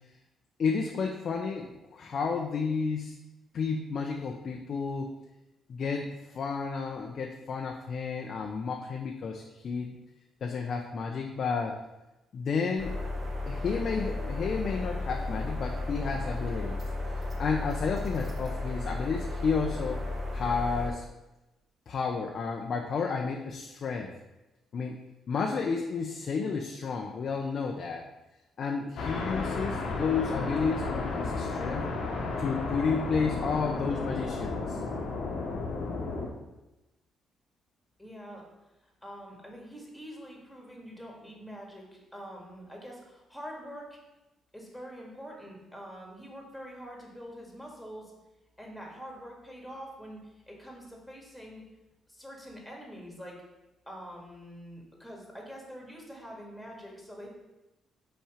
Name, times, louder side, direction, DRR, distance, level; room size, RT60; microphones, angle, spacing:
voice 1, 0.6-3.1 3.5-5.1 5.7-6.1 6.3-10.0 10.4-11.8 12.3-13.0 13.5-16.8 17.4-20.0 20.3-21.0 21.9-24.1 24.7-25.0 25.3-28.1 28.6-31.8 32.4-34.8, left 5 dB, 55° left, 1 dB, 0.6 m, -31 dB
sound 1, 12.8-20.9, left 2 dB, 35° right, 1.8 m, -34 dB
sound 2, 29.0-36.3, left 3 dB, 75° left, 1.1 m, -33 dB
voice 2, 38.0-38.4 39.0-44.0 44.5-48.1 48.6-51.6 52.1-53.4 53.9-57.4, equal, ahead, -1 dB, 2.1 m, -45 dB
5.6 x 4.4 x 5.0 m, 1.0 s
cardioid pair, 90°, 0 cm